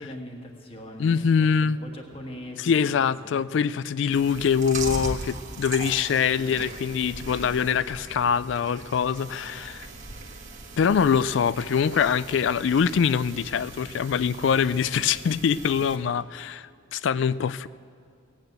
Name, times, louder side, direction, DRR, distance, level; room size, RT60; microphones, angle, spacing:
voice 1, 0.0-3.4, equal, 30° left, 2 dB, 1.4 m, -41 dB
voice 2, 1.0-1.8 2.6-9.9 10.8-17.7, left 7 dB, 65° left, 17 dB, 0.3 m, -24 dB
Chewing mastication, 4.1-16.0, right 3 dB, 35° right, 1.4 m, -39 dB
17.0 x 9.0 x 7.9 m, 2.4 s
head